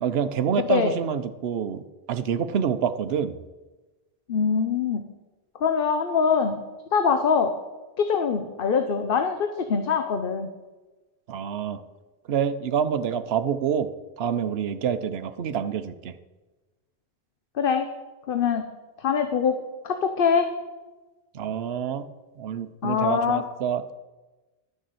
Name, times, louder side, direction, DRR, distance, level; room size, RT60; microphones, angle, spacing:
voice 1, 0.0-1.8 2.1-3.3 11.3-11.8 12.3-13.9 14.2-16.1 21.3-22.1 22.4-23.9, right 8 dB, 70° right, 11 dB, 1.0 m, -27 dB
voice 2, 4.3-5.0 5.6-6.6 6.9-7.5 8.0-10.5 17.6-17.9 18.3-18.6 19.0-19.6 19.8-20.5 22.8-23.4, left 6 dB, 55° left, 7 dB, 1.0 m, -23 dB
12.0 x 6.6 x 7.7 m, 1.2 s
omnidirectional pair, 1.1 m